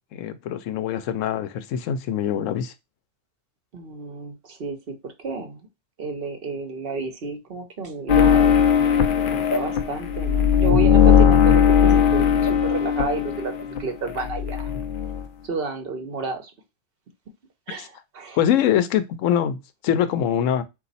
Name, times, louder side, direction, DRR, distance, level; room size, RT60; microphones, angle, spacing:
voice 1, 0.1-2.7 17.8-17.9 18.4-19.6 19.8-20.6, left 9 dB, 80° left, 1.0 m, -23 dB
voice 2, 3.7-5.6 6.0-8.6 9.1-14.7 15.4-16.5 17.7-18.4, right 4 dB, 55° right, 0.9 m, -31 dB
sound 1, 8.1-13.8 14.1-15.2, left 8 dB, 60° left, 0.5 m, -18 dB
4.0 x 2.6 x 4.0 m
omnidirectional pair, 1.3 m